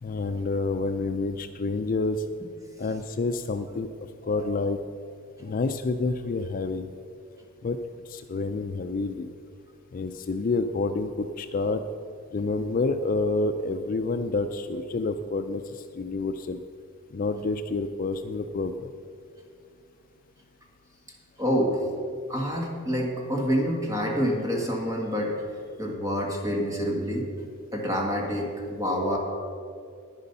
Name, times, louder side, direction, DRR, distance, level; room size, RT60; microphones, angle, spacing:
voice 1, 0.0-2.3 2.8-4.8 5.4-6.9 7.6-7.8 8.1-9.3 9.9-11.8 12.3-16.6 17.1-18.9, left 3 dB, 40° left, 8 dB, 0.4 m, -28 dB
voice 2, 21.4-21.8 22.3-25.3 25.8-27.3 27.7-29.2, equal, 15° right, 0 dB, 1.7 m, -27 dB
10.5 x 9.9 x 5.5 m, 2.4 s
head